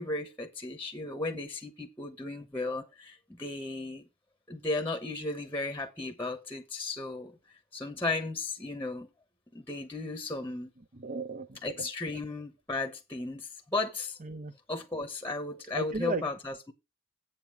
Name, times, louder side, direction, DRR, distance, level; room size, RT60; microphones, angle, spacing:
voice 1, 0.0-4.0 4.5-7.4 7.7-9.1 9.5-10.7 11.6-14.2 14.7-16.7, left 2 dB, 10° left, 1.0 m, -35 dB
voice 2, 10.9-11.9 14.2-14.5 15.7-16.2, right 3 dB, 35° right, 0.7 m, -35 dB
8.3 x 7.5 x 4.7 m
head